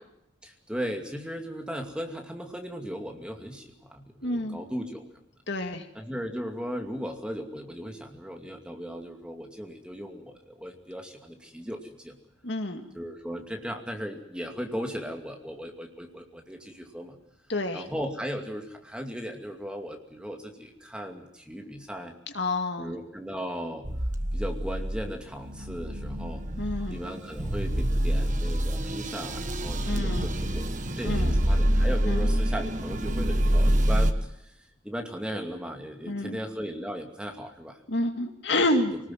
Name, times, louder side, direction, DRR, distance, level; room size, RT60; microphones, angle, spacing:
voice 1, 0.4-5.1 5.9-12.2 12.9-17.2 17.7-22.1 22.8-23.9 24.3-26.5 26.9-30.7 31.0-37.8 38.7-38.8, equal, 5° right, 3 dB, 2.5 m, -37 dB
voice 2, 4.2-4.6 5.5-5.9 12.4-12.8 17.5-17.8 22.3-22.9 26.6-27.0 29.8-30.3 31.0-31.4 32.1-32.3 36.0-36.4 37.9-38.9, left 2 dB, 60° left, 5 dB, 2.5 m, -28 dB
sound 1, 23.8-34.1, equal, 40° right, 1.4 m, -26 dB
25.5 x 19.5 x 7.6 m, 0.77 s
head